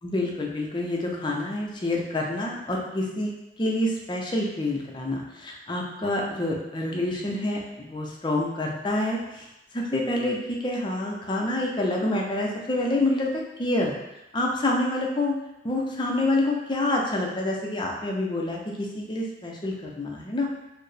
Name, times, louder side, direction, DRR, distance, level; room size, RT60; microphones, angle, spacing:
voice 1, 0.0-3.3 3.6-9.5 9.7-13.9 14.3-15.4 15.6-20.5, left 1 dB, 25° left, -1 dB, 0.5 m, -27 dB
4.4 x 2.0 x 3.2 m, 0.94 s
head